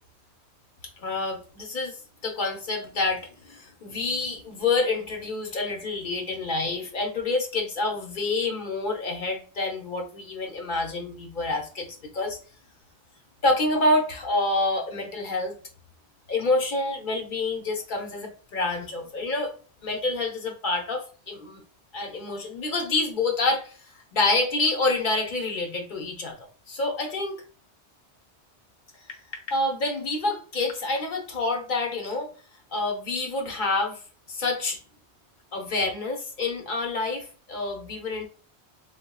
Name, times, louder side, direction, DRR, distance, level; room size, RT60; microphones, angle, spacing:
voice 1, 1.0-11.9 12.1-12.4 13.4-15.5 16.3-19.5 19.8-21.6 21.9-23.8 24.1-26.4 26.7-27.4 29.5-32.3 32.7-34.0 34.3-34.8 35.5-38.3, left 2 dB, 50° left, 0.8 m, -27 dB
3.8 x 2.3 x 2.2 m
omnidirectional pair, 1.1 m